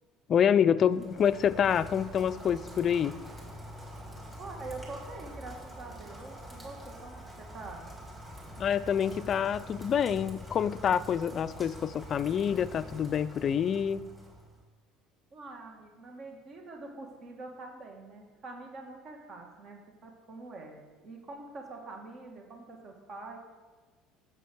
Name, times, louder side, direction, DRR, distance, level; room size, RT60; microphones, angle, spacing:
voice 1, 0.3-3.2 8.6-14.0, left 8 dB, 45° left, 15 dB, 0.4 m, -27 dB
Rain, 0.8-14.6, equal, 20° right, 3.5 m, -45 dB
voice 2, 4.4-7.9 15.3-23.4, right 3 dB, 45° right, 2 dB, 2.0 m, -45 dB
7.3 x 6.9 x 6.3 m, 1.3 s
supercardioid pair, 95°, 0 cm